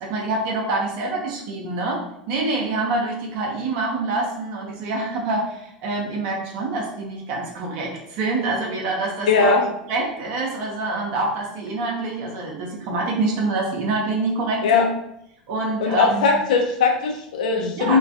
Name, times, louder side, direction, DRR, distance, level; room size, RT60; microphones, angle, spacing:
voice 1, 0.0-2.0 2.3-9.5 9.9-14.9 15.5-16.2 17.6-18.0, right 3 dB, 50° right, -1 dB, 0.6 m, -26 dB
voice 2, 9.3-9.6 14.6-14.8 15.8-18.0, left 4 dB, 65° left, 1 dB, 0.5 m, -19 dB
2.3 x 2.2 x 2.5 m, 0.78 s
figure-of-eight pair, 80°, 5 cm